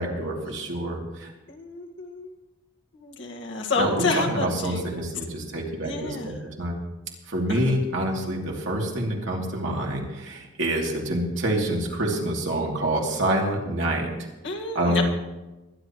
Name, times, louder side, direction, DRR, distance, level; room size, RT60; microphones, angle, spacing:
voice 1, 0.0-1.3 3.8-6.8 7.3-14.1 14.7-15.0, right 1 dB, 65° right, -1 dB, 2.8 m, -27 dB
voice 2, 1.5-2.3 2.9-4.8 5.8-6.3 7.5-7.8 14.4-15.0, left 3 dB, 60° left, 1 dB, 1.8 m, -29 dB
22.0 x 11.0 x 3.1 m, 1.1 s
head